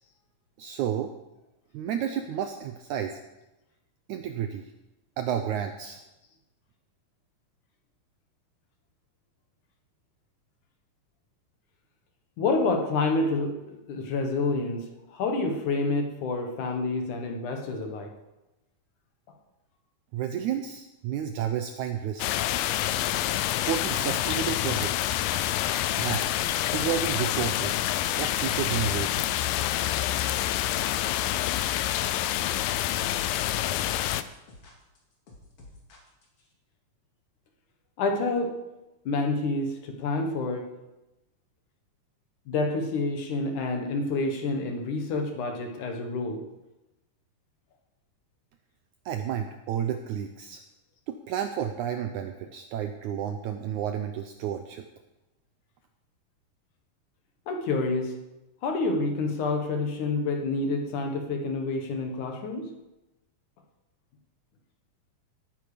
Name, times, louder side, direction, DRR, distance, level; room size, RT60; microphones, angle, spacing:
voice 1, 0.6-1.1 1.7-3.2 4.1-4.6 5.2-6.0 20.1-22.3 23.5-25.1 26.0-26.3 26.7-27.8 28.1-29.3 49.1-50.6 51.1-54.9, right 9 dB, 75° right, 7 dB, 1.8 m, -31 dB
voice 2, 12.4-18.1 38.0-38.5 39.1-40.7 42.5-46.4 57.5-58.2 58.6-62.7, left 3 dB, 65° left, 3 dB, 2.7 m, -28 dB
sound 1, 22.2-34.2, left 13 dB, 80° left, 2.2 m, -27 dB
sound 2, 34.3-36.5, left 2 dB, 45° left, 3.0 m, -50 dB
18.0 x 9.4 x 5.1 m, 0.99 s
omnidirectional pair, 4.1 m